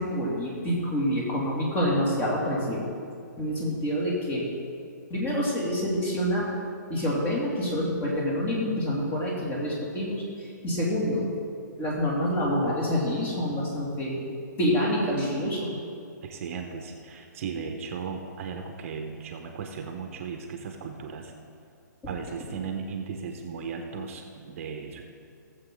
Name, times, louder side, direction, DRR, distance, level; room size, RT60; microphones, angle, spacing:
voice 1, 0.0-2.9 3.4-4.4 5.1-6.5 6.9-11.3 11.8-14.3 14.6-15.8, equal, 20° left, -4 dB, 2.6 m, -27 dB
voice 2, 16.2-21.3 22.1-25.0, right 5 dB, 45° right, 3 dB, 1.2 m, -36 dB
17.0 x 7.6 x 3.8 m, 2.5 s
hypercardioid pair, 150°, 10 cm